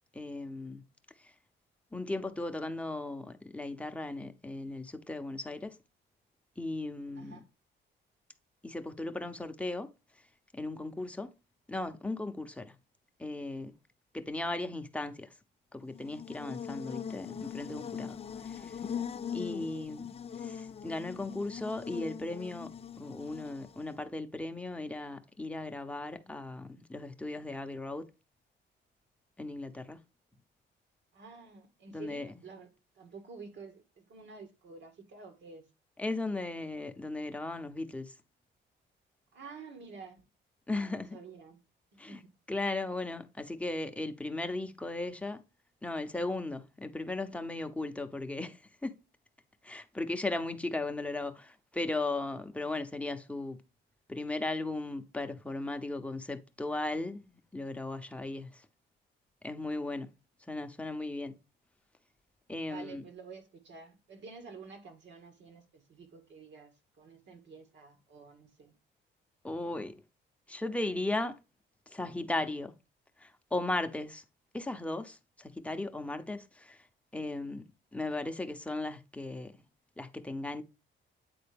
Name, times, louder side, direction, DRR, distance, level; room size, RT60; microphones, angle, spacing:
voice 1, 0.1-0.8 1.9-5.7 6.6-7.4 8.6-9.9 10.5-11.3 11.7-12.7 13.2-13.7 14.1-15.3 15.7-18.2 18.4-18.7 19.3-20.0 20.4-22.7 23.0-28.1 29.4-30.0 31.9-32.3 36.0-38.1 40.7-41.2 42.0-42.2 42.5-45.4 45.8-48.6 48.8-48.9 49.6-53.6 54.1-58.6 59.4-60.1 60.5-61.3 62.5-63.0 69.4-70.0 70.5-71.4 71.9-72.7 73.2-74.2 74.5-76.8 77.1-77.6 77.9-79.5 80.0-80.6, left 2 dB, 5° left, 0.8 m, -36 dB
Buzz, 15.8-24.0, left 7 dB, 30° left, 0.3 m, -41 dB
voice 2, 31.1-35.6 39.3-40.2 41.0-41.6 41.9-42.3 62.7-68.7, right 4 dB, 65° right, 1.8 m, -50 dB
8.7 x 3.9 x 3.5 m
cardioid pair, 90°, 20 cm